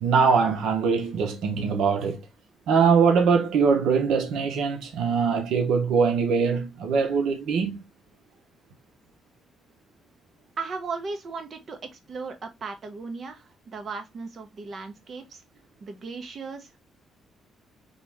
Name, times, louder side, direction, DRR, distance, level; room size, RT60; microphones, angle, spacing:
voice 1, 0.0-2.2 2.7-7.8, right 5 dB, 85° right, 1.0 m, -22 dB
voice 2, 10.6-15.4 15.8-16.8, right 4 dB, 40° right, 1.1 m, -36 dB
4.0 x 3.0 x 3.5 m
cardioid pair, 120°, 0 cm